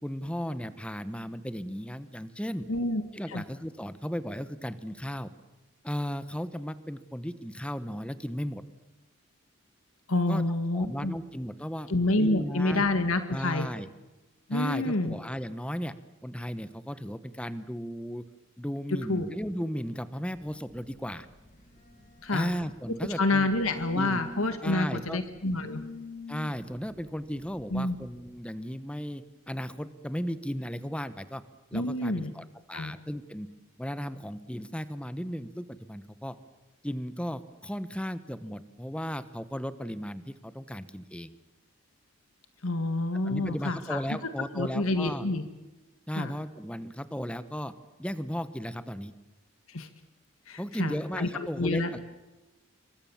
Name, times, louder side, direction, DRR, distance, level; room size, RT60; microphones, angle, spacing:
voice 1, 0.0-2.7 3.1-5.3 5.8-8.6 10.3-10.4 10.7-11.9 12.2-12.8 13.3-13.9 14.5-15.9 16.2-18.2 18.6-21.3 22.3-23.5 23.9-24.2 24.6-25.2 26.3-31.4 31.7-33.5 33.8-36.4 36.8-41.3 43.2-45.3 46.1-47.7 48.0-49.1 50.6-52.0, equal, 5° left, 13 dB, 1.1 m, -35 dB
voice 2, 2.7-3.0 3.3-3.4 10.1-11.2 11.9-13.7 14.5-15.2 19.1-19.3 22.2-22.5 23.2-25.8 27.7-28.0 31.7-32.3 32.7-32.9 42.6-44.0 44.6-45.4 46.2-46.3 49.7-49.9 50.5-51.9, left 2 dB, 85° left, 9 dB, 1.8 m, -28 dB
Telephone, 20.3-28.4, left 2 dB, 40° left, 4.4 m, -48 dB
27.0 x 24.0 x 7.3 m, 1.1 s
head